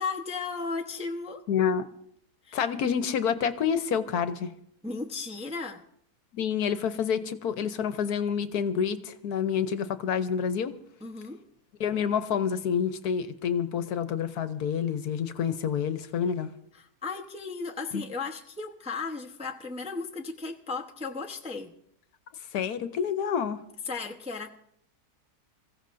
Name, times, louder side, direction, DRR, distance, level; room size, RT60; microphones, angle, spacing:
voice 1, 0.0-1.4 2.4-2.6 4.8-5.8 11.0-11.4 16.7-21.7 23.9-24.5, left 4 dB, 5° right, 1 dB, 0.6 m, -35 dB
voice 2, 1.5-1.9 2.5-4.5 6.3-10.7 11.8-16.5 17.9-18.0 22.5-23.6, left 7 dB, 70° left, 11 dB, 1.3 m, -28 dB
26.5 x 15.5 x 2.6 m, 0.69 s
omnidirectional pair, 1.7 m